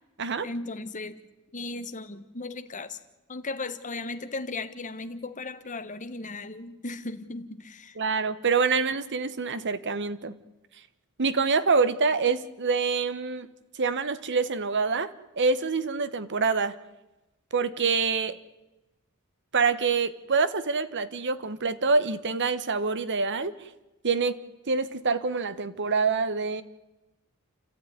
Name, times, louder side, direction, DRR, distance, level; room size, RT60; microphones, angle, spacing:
voice 1, 0.4-1.2 1.5-3.0 3.3-8.0, left 3 dB, 35° left, 1.3 m, -36 dB
voice 2, 8.0-10.3 11.2-13.5 13.8-15.1 15.4-16.7 17.5-18.4 19.5-23.5 24.0-24.4 24.7-26.6, right 4 dB, 55° right, 1.2 m, -26 dB
29.5 x 13.0 x 9.7 m
head